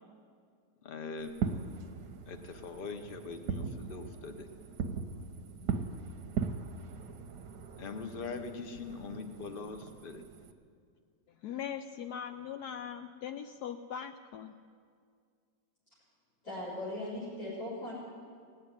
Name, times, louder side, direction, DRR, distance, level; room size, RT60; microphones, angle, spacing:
voice 1, 0.8-1.8 2.3-4.5 7.8-10.2, left 4 dB, 40° left, 7 dB, 0.9 m, -42 dB
Fireworks, 1.2-10.5, right 6 dB, 60° right, 1.1 m, -39 dB
voice 2, 11.4-14.5, left 8 dB, 75° left, 9 dB, 0.9 m, -40 dB
voice 3, 16.4-17.9, left 1 dB, 55° left, -10 dB, 5.2 m, -38 dB
18.0 x 8.0 x 9.8 m, 2.2 s
omnidirectional pair, 2.1 m